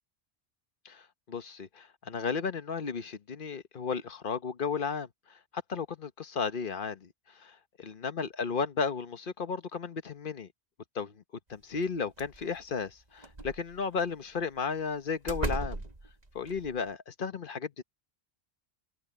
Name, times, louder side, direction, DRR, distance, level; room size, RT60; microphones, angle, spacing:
voice 1, 0.8-5.4 5.7-7.1 7.3-7.5 7.8-10.5 10.9-11.2 11.5-15.8 16.3-17.8, left 5 dB, 55° left, 1.1 m, -34 dB
sound 1, 11.8-11.9 12.2-12.6 13.2-14.0 14.8-14.9 15.3-16.8, right 2 dB, 40° right, 2.1 m, -36 dB
omnidirectional pair, 1.0 m